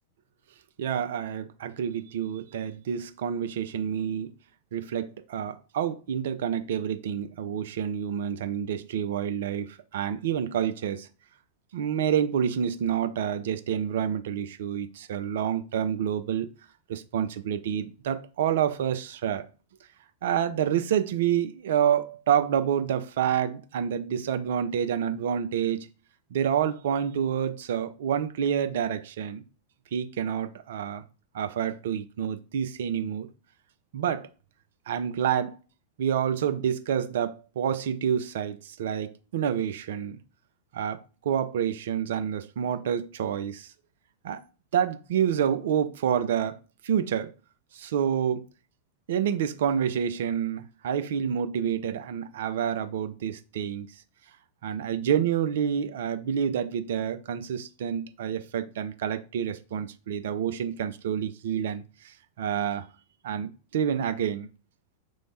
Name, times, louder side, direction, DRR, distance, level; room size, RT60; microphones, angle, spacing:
voice 1, 0.8-4.4 4.7-11.1 11.7-16.5 16.9-19.5 20.2-25.9 26.3-29.4 29.9-31.0 31.3-33.3 33.9-34.3 34.9-35.6 36.0-40.2 40.7-43.7 44.2-44.4 44.7-47.3 47.7-48.4 49.1-53.9 54.6-62.9 63.2-64.5, right 8 dB, 60° right, 0.3 m, -28 dB
3.1 x 2.1 x 3.9 m
figure-of-eight pair, 90°, 0 cm